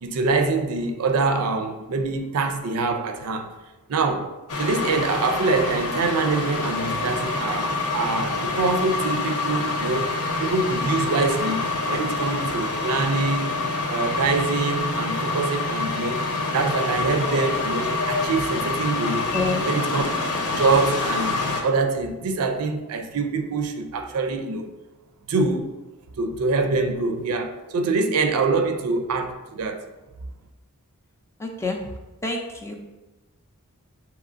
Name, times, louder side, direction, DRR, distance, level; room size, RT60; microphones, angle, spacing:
voice 1, 0.0-3.5 3.9-4.3 4.6-10.1 10.4-13.6 13.9-16.2 16.5-19.3 19.7-20.0 20.6-21.3 21.6-24.7 25.3-25.7 26.2-29.8, right 3 dB, 80° right, 0.5 m, -24 dB
sound 1, 4.5-21.6, left 3 dB, 75° left, 0.7 m, -26 dB
voice 2, 19.3-19.7 31.4-32.8, left 2 dB, 10° left, 0.4 m, -28 dB
6.5 x 2.9 x 2.5 m
head